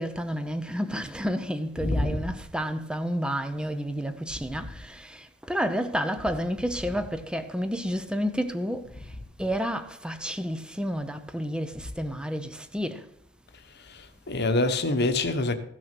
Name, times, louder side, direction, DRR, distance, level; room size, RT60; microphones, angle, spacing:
voice 1, 0.0-8.9 9.4-13.0, equal, 5° right, 0.7 m, -30 dB
voice 2, 1.8-2.2 13.9-15.5, left 2 dB, 50° left, 1.2 m, -26 dB
15.5 x 6.3 x 6.0 m
head